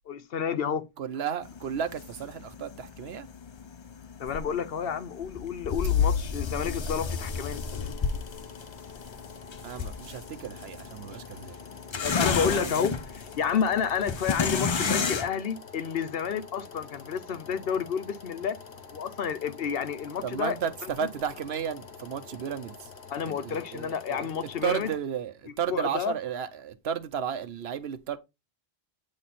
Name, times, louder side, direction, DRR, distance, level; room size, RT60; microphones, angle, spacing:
voice 1, 0.1-0.9 4.2-7.9 12.0-18.6 18.9-20.5 23.1-24.9 25.7-26.1, left 7 dB, 70° left, 0.9 m, -30 dB
voice 2, 1.0-3.3 9.6-11.6 12.2-13.0 14.7-14.8 20.2-22.9 23.2-24.3 24.6-28.2, right 8 dB, 80° right, 1.0 m, -33 dB
sound 1, 1.4-15.3, left 6 dB, 40° left, 0.4 m, -32 dB
sound 2, 7.1-25.0, left 5 dB, 85° left, 1.2 m, -47 dB
8.7 x 3.2 x 4.2 m
omnidirectional pair, 1.1 m